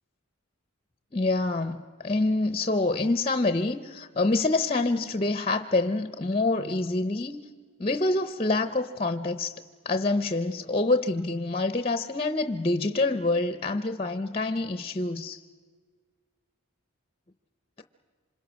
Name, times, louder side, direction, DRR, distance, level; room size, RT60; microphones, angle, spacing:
voice 1, 1.1-7.4 7.8-15.4, left 2 dB, 25° left, 10 dB, 0.7 m, -26 dB
27.0 x 25.5 x 6.3 m, 1.5 s
head